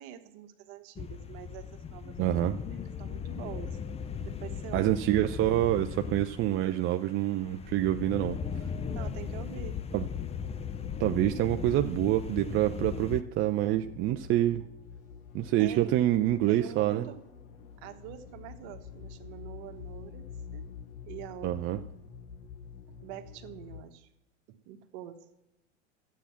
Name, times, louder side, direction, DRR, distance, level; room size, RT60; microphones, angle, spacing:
voice 1, 0.0-2.3 2.7-3.8 4.2-5.0 8.9-9.8 15.6-16.0 16.5-17.2 17.8-20.7 21.0-21.9 23.0-24.1 24.5-25.2, right 11 dB, 55° right, 7 dB, 1.4 m, -45 dB
sound 1, 1.0-13.2, left 7 dB, 20° left, 0.6 m, -38 dB
voice 2, 2.2-2.6 4.7-8.4 9.9-10.0 11.0-14.6 15.3-17.1 21.4-21.8, right 14 dB, 35° right, 7 dB, 0.6 m, -27 dB
sound 2, 7.7-23.8, left 7 dB, 55° left, 1.5 m, -47 dB
12.0 x 8.5 x 5.9 m, 0.87 s
hypercardioid pair, 95°, 34 cm